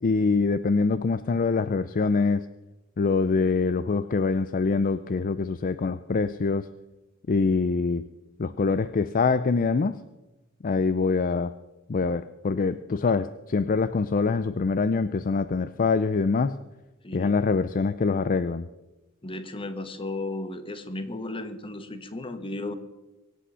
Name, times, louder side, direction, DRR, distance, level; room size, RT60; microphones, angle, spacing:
voice 1, 0.0-2.4 3.0-6.7 7.3-8.0 8.4-9.9 10.6-11.5 11.9-16.6 17.1-18.7, left 4 dB, 40° left, 13 dB, 0.4 m, -24 dB
voice 2, 19.2-22.7, left 2 dB, 25° left, 9 dB, 1.2 m, -34 dB
23.5 x 8.4 x 5.6 m, 1.0 s
head